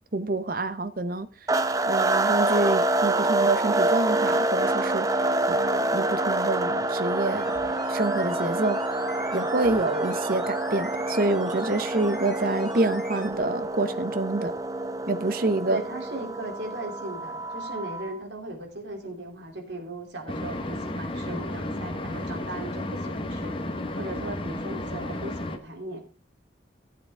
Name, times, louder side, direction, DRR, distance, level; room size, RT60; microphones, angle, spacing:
voice 1, 0.1-1.3 1.9-5.1 5.5-7.5 7.9-8.8 9.3-14.5 15.1-15.8, right 2 dB, 50° right, 0.9 m, -27 dB
sound 1, 1.5-18.2, right 2 dB, 20° right, 0.6 m, -27 dB
sound 2, 7.3-13.4 13.6-13.7, left 1 dB, ahead, 2.8 m, -42 dB
voice 2, 15.7-23.6 24.0-26.0, right 1 dB, 75° right, 2.9 m, -38 dB
sound 3, 20.3-25.6, left 1 dB, 30° left, 1.1 m, -33 dB
15.0 x 8.0 x 3.4 m
head